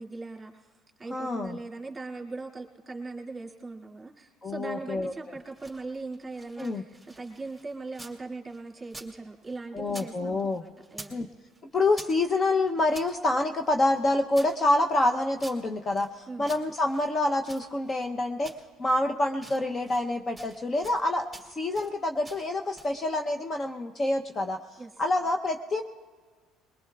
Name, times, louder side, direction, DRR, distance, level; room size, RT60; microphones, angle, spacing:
voice 1, 0.0-11.2 16.3-16.5 24.8-24.9, right 3 dB, 20° right, -1 dB, 2.4 m, -40 dB
voice 2, 1.1-1.6 4.4-5.4 6.6-6.8 9.7-10.6 11.1-11.3 11.7-18.5 18.8-24.6 25.0-25.8, left 2 dB, 30° left, 5 dB, 0.7 m, -27 dB
sound 1, 5.3-8.2 8.5-10.1 10.4-11.2 11.5-13.1 13.6-16.1 16.4-18.1 18.4-19.0 19.3-20.1 20.4-21.0 21.3-21.9 22.2-23.0, right 2 dB, ahead, 2.4 m, -48 dB
21.5 x 21.0 x 2.4 m, 1.5 s
cardioid pair, 105°, 0 cm